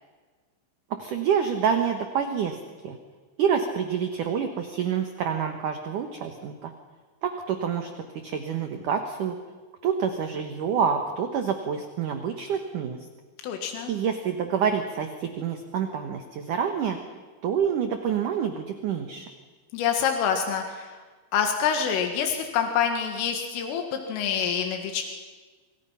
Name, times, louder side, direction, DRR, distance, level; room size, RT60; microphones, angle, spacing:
voice 1, 1.0-2.6 2.8-3.0 3.4-6.7 7.2-9.4 9.8-13.0 13.9-17.0 17.4-19.3, right 7 dB, 65° right, 6 dB, 2.1 m, -27 dB
voice 2, 13.4-13.9 19.7-21.0 21.3-25.1, left 7 dB, 90° left, 4 dB, 4.5 m, -26 dB
28.5 x 26.0 x 5.8 m, 1.4 s
omnidirectional pair, 5.6 m